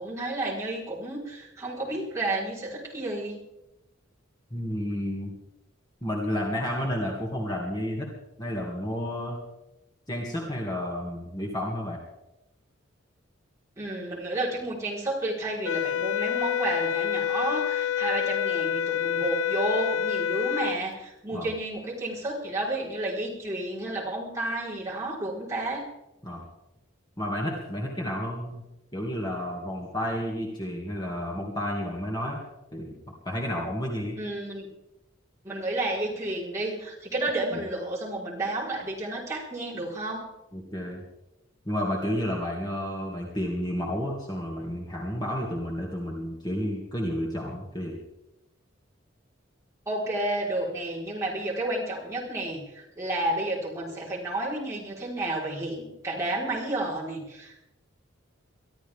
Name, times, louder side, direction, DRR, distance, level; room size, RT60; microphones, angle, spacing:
voice 1, 0.0-3.4 13.8-25.9 34.2-34.7 35.4-40.3 49.9-57.6, right 1 dB, 15° right, -6 dB, 4.5 m, -31 dB
voice 2, 4.5-5.3 6.0-8.1 8.4-9.4 10.1-12.0 21.3-21.5 26.2-26.4 27.2-28.6 28.9-32.4 32.7-33.0 33.2-34.2 37.5-37.6 40.5-41.0 41.7-47.9, equal, 20° left, -2 dB, 2.4 m, -31 dB
sound 1, 15.6-20.8, left 8 dB, 80° left, 0.4 m, -27 dB
23.5 x 13.5 x 3.6 m, 0.92 s
head